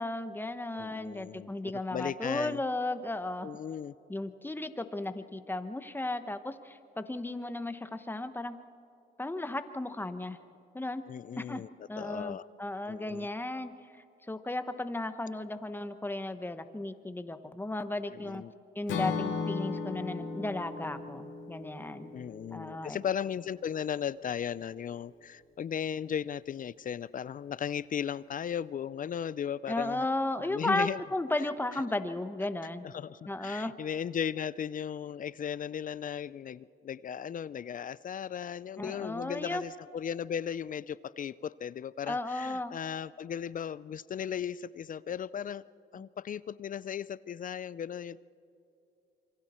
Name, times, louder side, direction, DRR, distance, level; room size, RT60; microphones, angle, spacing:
voice 1, 0.0-3.5 4.1-8.6 9.2-10.4 10.7-11.0 11.4-11.6 11.9-18.4 18.7-22.1 22.5-23.0 29.7-32.9 33.3-33.7 38.8-39.6 42.1-42.8 45.9-46.0, left 2 dB, 10° left, 10 dB, 1.1 m, -35 dB
voice 2, 0.7-2.6 3.4-3.9 11.1-11.7 12.0-12.5 12.9-13.3 18.1-18.5 22.1-30.1 30.4-31.0 32.8-45.6 45.9-48.2, left 8 dB, 45° left, 19 dB, 0.4 m, -36 dB
Acoustic guitar / Strum, 18.9-23.0, left 4 dB, 70° left, 2.4 m, -36 dB
27.0 x 24.0 x 4.4 m, 2.7 s
cardioid pair, 90°, 20 cm